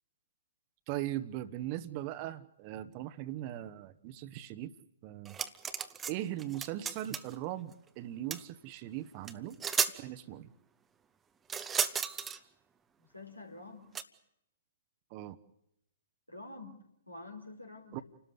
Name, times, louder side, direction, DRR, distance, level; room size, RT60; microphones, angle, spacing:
voice 1, 0.9-4.7 5.0-5.4 6.1-9.6 10.0-10.5 15.1-15.4 17.9-18.0, right 13 dB, 35° right, 12 dB, 1.2 m, -39 dB
sound 1, 5.3-6.1 6.4-7.3 8.3-8.4 9.3-9.4 9.6-10.0 11.5-12.4 13.9-14.0, right 7 dB, 15° right, 1.0 m, -33 dB
voice 2, 13.0-13.9 16.3-18.0, left 2 dB, 85° left, 3 dB, 4.2 m, -48 dB
30.0 x 13.0 x 9.6 m, 0.82 s
figure-of-eight pair, 115°, 0 cm